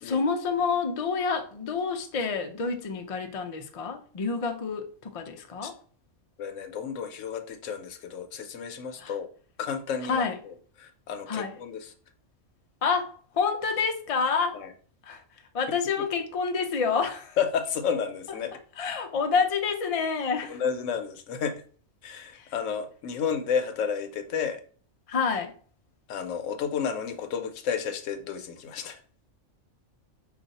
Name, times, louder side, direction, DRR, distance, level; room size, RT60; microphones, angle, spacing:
voice 1, 0.0-5.7 9.0-9.1 10.1-10.4 11.3-11.6 12.8-14.6 15.0-15.2 15.5-17.4 18.8-20.6 22.3-22.5 25.1-25.5, left 5 dB, 50° left, 0.4 m, -28 dB
voice 2, 6.4-9.3 9.6-11.9 14.5-14.7 15.7-16.1 17.4-18.5 20.5-21.6 22.0-24.6 26.1-29.0, left 7 dB, 75° left, 1.0 m, -31 dB
5.1 x 2.4 x 4.0 m
omnidirectional pair, 1.3 m